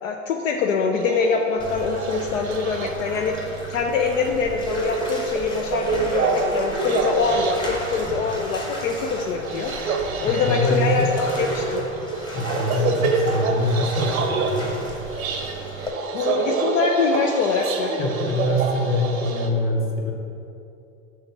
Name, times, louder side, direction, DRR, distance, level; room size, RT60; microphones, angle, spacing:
voice 1, 0.0-9.7 10.2-11.8 16.1-17.9, left 5 dB, 65° left, 2 dB, 0.6 m, -24 dB
sound 1, 0.9-19.5, right 4 dB, 75° right, 0.8 m, -28 dB
Bathtub (filling or washing), 1.6-15.9, right 1 dB, 10° left, 1.0 m, -36 dB
voice 2, 10.2-11.2 12.3-14.7 18.0-20.1, left 1 dB, 30° left, 0 dB, 1.1 m, -24 dB
6.2 x 3.5 x 5.7 m, 2.6 s
figure-of-eight pair, 80°, 42 cm